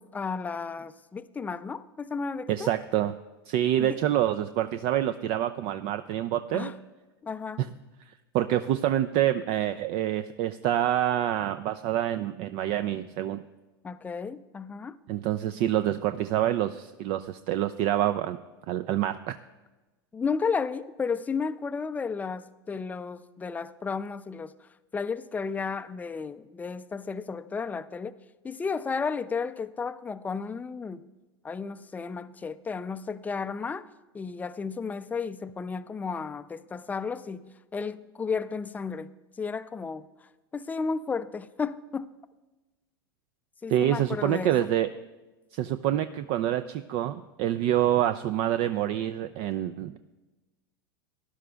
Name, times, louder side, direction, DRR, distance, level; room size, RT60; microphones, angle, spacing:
voice 1, 0.0-2.7 3.8-4.0 6.5-6.8 7.2-7.6 13.8-15.0 20.1-28.2 28.4-31.1 31.4-33.9 34.1-39.1 39.4-40.1 40.5-42.1 43.6-44.7, left 5 dB, 10° left, 0.4 m, -33 dB
voice 2, 2.5-3.1 3.5-6.7 8.3-13.4 15.1-18.4 18.7-19.4 43.7-44.9 45.5-50.0, right 12 dB, 50° right, 0.4 m, -27 dB
17.5 x 11.5 x 2.3 m
hypercardioid pair, 95°, 13 cm